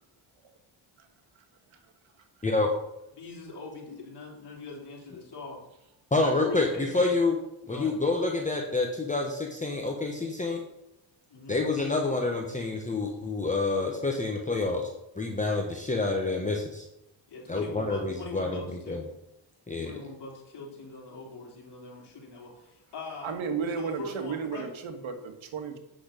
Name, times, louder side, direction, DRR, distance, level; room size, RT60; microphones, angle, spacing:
voice 1, 3.2-5.6 6.2-7.2 7.6-7.9 11.3-11.6 17.3-19.0 19.8-23.4 23.8-24.7, left 3 dB, 55° left, -3 dB, 3.8 m, -42 dB
voice 2, 6.1-7.4 7.7-10.6 11.5-14.9 15.2-16.9 17.5-18.6 18.9-19.0 19.7-20.0, left 3 dB, 15° left, 1 dB, 1.1 m, -28 dB
voice 3, 23.2-25.8, right 6 dB, 70° right, 6 dB, 1.6 m, -33 dB
8.6 x 6.2 x 5.2 m, 0.89 s
cardioid pair, 100°, 48 cm